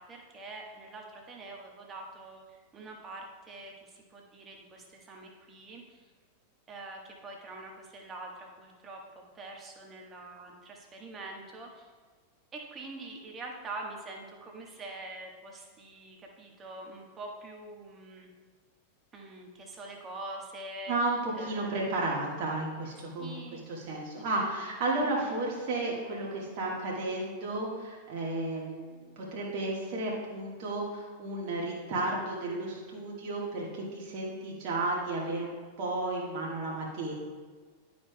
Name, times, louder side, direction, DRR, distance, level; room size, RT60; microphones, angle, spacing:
voice 1, 0.0-6.1 6.7-11.9 12.5-18.3 19.1-20.9 21.4-22.0 23.2-23.7 25.0-25.4, right 2 dB, 25° right, 1 dB, 1.3 m, -45 dB
voice 2, 20.9-37.1, right 2 dB, 45° right, -4 dB, 1.5 m, -33 dB
11.5 x 5.2 x 2.2 m, 1.5 s
figure-of-eight pair, 90°, 0 cm